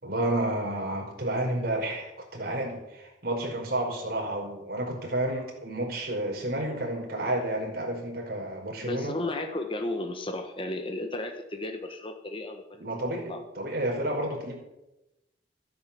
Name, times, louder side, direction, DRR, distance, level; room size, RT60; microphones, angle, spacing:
voice 1, 0.0-9.2 12.8-14.5, right 1 dB, 55° right, 0 dB, 5.2 m, -31 dB
voice 2, 8.8-13.4, left 2 dB, 30° left, 5 dB, 1.4 m, -34 dB
14.5 x 10.5 x 8.5 m, 0.94 s
head